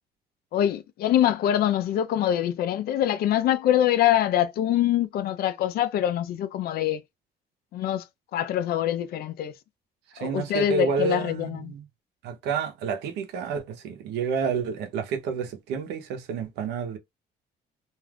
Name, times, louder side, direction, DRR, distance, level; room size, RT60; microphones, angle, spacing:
voice 1, 0.5-7.0 7.7-8.0 8.3-9.5 10.2-11.7, left 11 dB, 65° left, 0.6 m, -24 dB
voice 2, 10.1-11.8 12.2-17.0, right 6 dB, 85° right, 0.8 m, -29 dB
2.6 x 2.4 x 3.4 m
cardioid pair, 110°, 17 cm